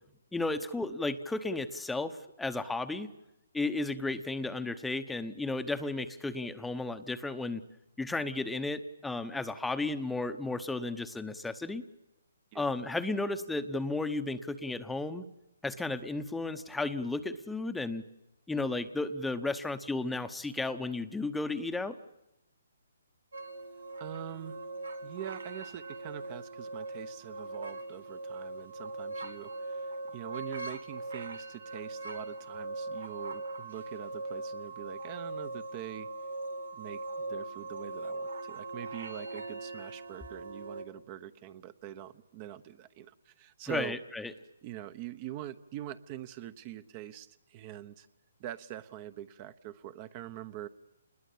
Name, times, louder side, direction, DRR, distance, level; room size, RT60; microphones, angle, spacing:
voice 1, 0.3-3.1 3.5-7.6 8.0-11.8 12.5-15.2 15.6-18.0 18.5-22.0 43.7-44.3, left 2 dB, 5° left, 9 dB, 1.0 m, -33 dB
sound 1, 23.3-40.8, right 2 dB, 80° right, 2.7 m, -40 dB
voice 2, 24.0-24.6 25.0-36.1 36.7-43.9 44.6-48.1 48.4-50.7, right 12 dB, 30° right, 12 dB, 1.0 m, -44 dB
27.5 x 21.0 x 8.5 m, 0.87 s
hypercardioid pair, 145°, 0 cm